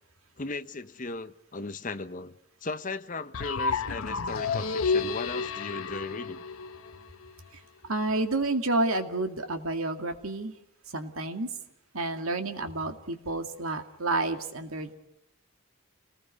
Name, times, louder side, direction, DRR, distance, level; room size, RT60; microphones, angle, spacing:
voice 1, 0.4-6.4, left 3 dB, 35° left, 0.9 m, -37 dB
sound 1, 3.3-7.3, left 4 dB, 75° left, 1.0 m, -31 dB
voice 2, 7.9-10.5 10.9-11.5 11.9-14.9, right 2 dB, 75° right, 2.3 m, -30 dB
30.0 x 20.0 x 5.3 m
head